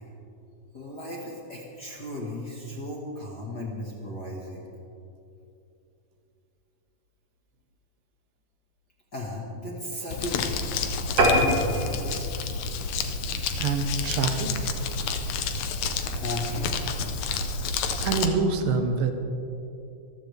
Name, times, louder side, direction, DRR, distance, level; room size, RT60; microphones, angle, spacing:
voice 1, 0.7-4.6 9.1-10.6 11.2-12.3 16.0-16.9, left 1 dB, 40° left, -2 dB, 1.6 m, -35 dB
Crumpling crinkling, 10.1-18.3, left 4 dB, 70° left, 1.9 m, -30 dB
sound 1, 11.2-13.9 14.4-14.6 15.0-15.1 15.4-15.5 15.8-15.9, right 1 dB, 50° right, 2.7 m, -25 dB
voice 2, 13.6-14.7 18.0-19.1, right 4 dB, 80° right, 5 dB, 2.8 m, -26 dB
25.0 x 14.5 x 3.4 m, 2.8 s
omnidirectional pair, 3.9 m